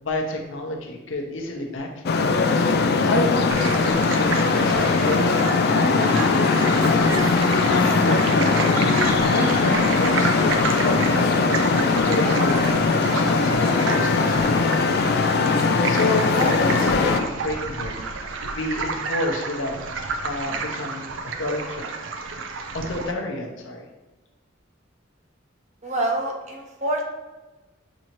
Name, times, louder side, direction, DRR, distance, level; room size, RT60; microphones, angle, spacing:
voice 1, 0.0-2.3 3.1-7.1 7.6-8.7 9.3-11.6 11.9-14.8 15.9-18.0 18.5-19.8 20.2-21.9 22.7-23.9, left 2 dB, 70° left, 1 dB, 0.7 m, -29 dB
Traffic noise roadway noise, 2.1-17.2, left 4 dB, 50° left, 0.3 m, -20 dB
sound 1, 3.5-23.1, right 4 dB, 70° right, 0.4 m, -30 dB
voice 2, 25.8-27.0, right 1 dB, 35° right, 0 dB, 0.7 m, -26 dB
6.1 x 2.7 x 3.0 m, 1.1 s
head